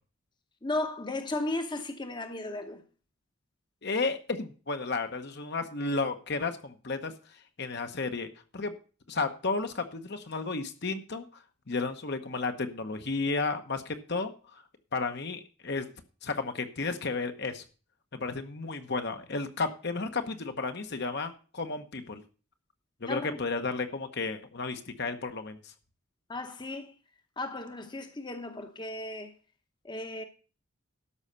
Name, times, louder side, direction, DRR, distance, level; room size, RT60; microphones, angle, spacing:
voice 1, 0.6-2.8 23.1-23.4 26.3-26.9 27.4-29.3 29.8-30.2, left 2 dB, 20° left, 0.9 m, -35 dB
voice 2, 3.8-7.1 7.6-8.7 9.1-14.6 14.9-15.9 16.2-17.6 18.1-22.2 23.0-25.7, left 3 dB, 50° left, 1.0 m, -33 dB
12.5 x 5.6 x 6.7 m
head